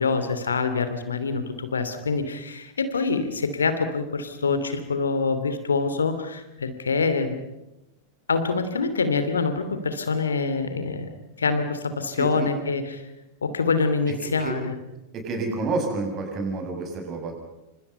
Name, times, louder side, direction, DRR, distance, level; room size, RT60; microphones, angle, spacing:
voice 1, 0.0-7.4 8.3-11.1 11.4-13.0 13.4-14.7, left 4 dB, 70° left, 10 dB, 2.9 m, -25 dB
voice 2, 12.1-12.5 14.4-14.5 15.1-17.3, right 3 dB, 30° right, 3 dB, 7.3 m, -29 dB
29.0 x 26.5 x 5.6 m, 0.95 s
figure-of-eight pair, 90°, 0 cm